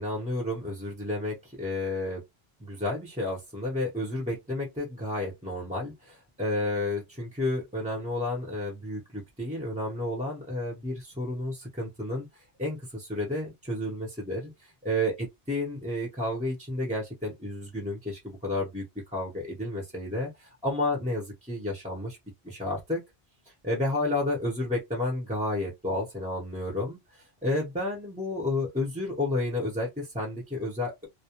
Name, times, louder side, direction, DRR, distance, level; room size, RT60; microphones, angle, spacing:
voice 1, 0.0-2.2 2.6-12.3 12.6-14.5 14.8-18.8 19.1-20.3 20.6-22.2 22.4-23.0 23.6-27.0 27.4-31.1, left 1 dB, 10° right, 0.7 m, -31 dB
2.3 x 2.1 x 2.9 m
omnidirectional pair, 1.1 m